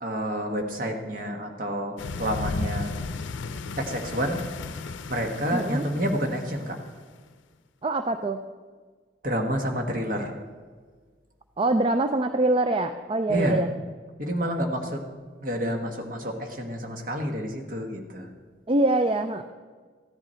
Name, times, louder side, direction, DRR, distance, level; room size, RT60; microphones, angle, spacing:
voice 1, 0.0-1.9 2.2-2.9 3.8-4.4 5.1-6.8 9.2-10.3 13.3-13.6 14.2-15.0 15.4-18.3, equal, 45° right, 3 dB, 1.5 m, -29 dB
sound 1, 2.0-7.0, left 3 dB, 90° left, 0.6 m, -34 dB
voice 2, 5.5-5.8 7.8-8.4 11.6-13.7 18.7-19.4, right 2 dB, 30° right, 8 dB, 0.4 m, -24 dB
14.5 x 10.5 x 4.4 m, 1.5 s
head